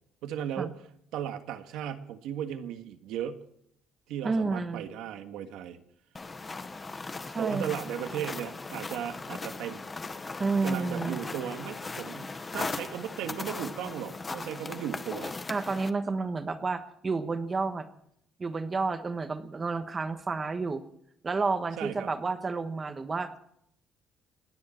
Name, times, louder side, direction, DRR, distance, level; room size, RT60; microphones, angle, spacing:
voice 1, 0.2-0.8 1.1-3.4 4.1-5.8 7.4-9.8 10.6-15.3 21.8-22.1, right 10 dB, 80° right, 7 dB, 1.7 m, -36 dB
voice 2, 4.2-4.8 7.3-7.7 10.4-11.2 15.5-17.9 18.4-20.8 21.2-23.4, right 4 dB, 20° right, 9 dB, 1.2 m, -30 dB
sound 1, 6.2-15.9, left 3 dB, 15° left, 0.9 m, -38 dB
29.0 x 10.5 x 4.5 m, 0.71 s
cardioid pair, 175°, 0 cm